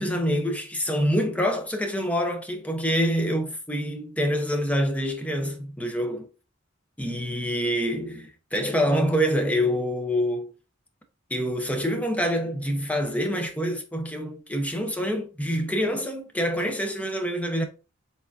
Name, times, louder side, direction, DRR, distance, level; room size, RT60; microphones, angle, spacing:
voice 1, 0.0-6.3 7.0-10.5 11.3-17.6, equal, 5° left, 0.7 m, -26 dB
4.5 x 3.6 x 2.6 m
head